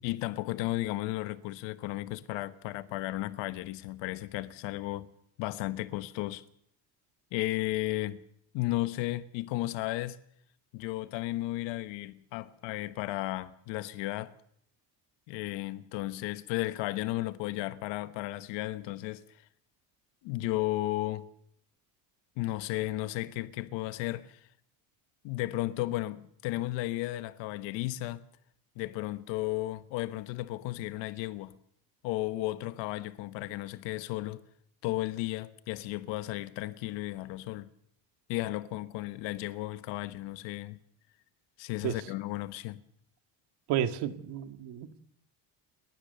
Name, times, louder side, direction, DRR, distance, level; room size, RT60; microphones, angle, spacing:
voice 1, 0.0-5.1 5.4-6.4 7.3-8.2 8.5-10.2 10.7-14.3 15.3-19.2 20.2-21.3 22.4-24.4 25.2-28.2 28.7-31.6 32.0-34.4 34.8-37.7 38.3-40.8 41.6-42.8, left 17 dB, 80° left, 1.4 m, -34 dB
voice 2, 43.7-45.0, right 10 dB, 65° right, 2.0 m, -31 dB
29.5 x 13.5 x 6.9 m
cardioid pair, 165°, 44 cm